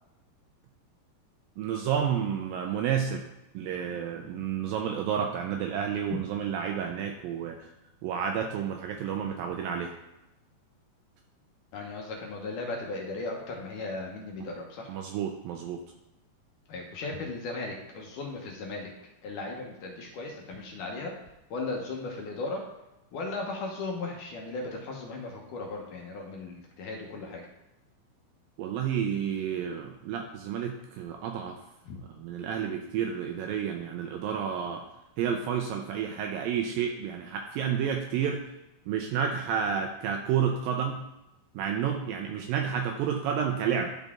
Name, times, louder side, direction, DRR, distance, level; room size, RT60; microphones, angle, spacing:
voice 1, 1.6-3.3 3.5-7.7 8.0-10.0 14.9-15.8 28.6-31.6 32.2-34.8 35.2-38.5 38.9-41.0 41.6-43.9, right 8 dB, 85° right, 3 dB, 2.0 m, -30 dB
voice 2, 11.7-14.9 16.7-18.9 19.2-21.1 21.5-22.6 23.1-27.4 31.8-32.0, left 3 dB, 70° left, 0 dB, 2.1 m, -36 dB
12.0 x 4.0 x 3.6 m, 0.93 s
omnidirectional pair, 4.7 m